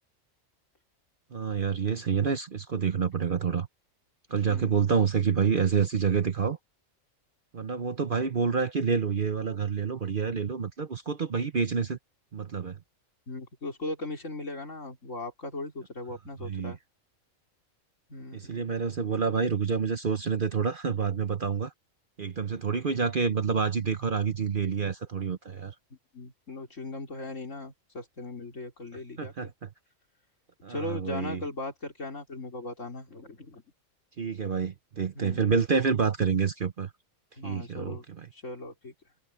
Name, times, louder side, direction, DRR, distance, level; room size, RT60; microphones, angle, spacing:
voice 1, 1.3-3.7 4.3-6.6 7.5-12.0 12.3-12.8 16.4-16.7 18.3-21.7 22.2-25.7 29.2-29.7 30.6-31.4 34.2-36.9 37.4-38.3, right 6 dB, 45° right, 0.9 m, -28 dB
voice 2, 4.4-4.8 13.3-16.8 18.1-18.7 26.1-29.5 30.7-33.6 35.1-35.5 37.4-38.0 38.3-38.9, left 2 dB, 65° left, 4.1 m, -38 dB
omnidirectional pair, 1.4 m